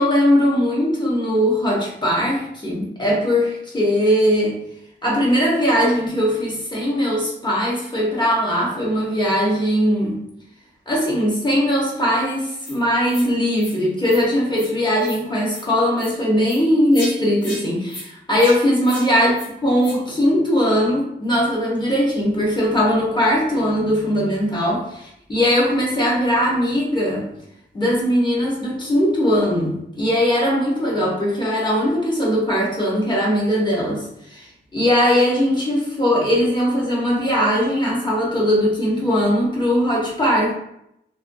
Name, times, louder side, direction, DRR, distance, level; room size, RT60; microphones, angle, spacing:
voice 1, 0.0-4.6 5.0-10.2 10.9-19.3 19.6-27.3 27.7-40.5, equal, 25° left, -4 dB, 0.8 m, -20 dB
sound 1, 12.6-12.8 13.1-13.3 13.6-13.8 14.0-14.2 14.5-14.7 15.0-15.2 15.5-15.6 16.0-16.1 16.4-16.6 16.9-17.1 17.4-17.6 17.9-18.1 18.4-18.6 18.8-19.1 19.3-19.5 19.8-20.0, left 1 dB, 80° left, 0.7 m, -35 dB
2.5 x 2.2 x 2.5 m, 0.78 s
wide cardioid pair, 105°, 19 cm